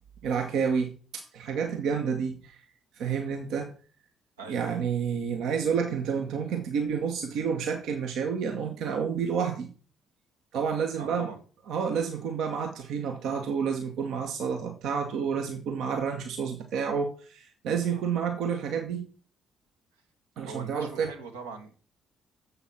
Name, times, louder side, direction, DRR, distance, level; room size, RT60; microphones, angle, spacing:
voice 1, 0.2-2.6 2.9-3.7 4.5-9.7 10.5-11.3 11.7-19.1 20.4-21.1, right 6 dB, 60° right, 1.0 m, -29 dB
voice 2, 4.4-4.9 11.0-11.4 17.9-18.0 20.4-21.8, right 4 dB, 80° right, 1.4 m, -42 dB
7.2 x 6.9 x 6.0 m
figure-of-eight pair, 45°, 0 cm